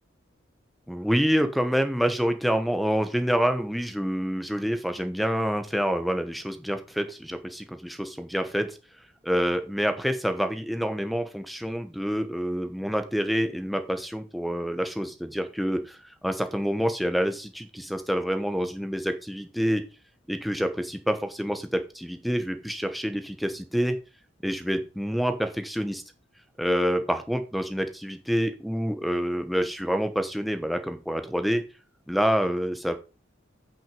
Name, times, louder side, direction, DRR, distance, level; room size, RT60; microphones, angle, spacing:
voice 1, 0.9-8.8 9.2-19.8 20.3-24.0 24.4-26.0 26.6-31.6 32.1-33.0, equal, ahead, 7 dB, 0.9 m, -27 dB
8.7 x 6.0 x 5.3 m, 0.31 s
head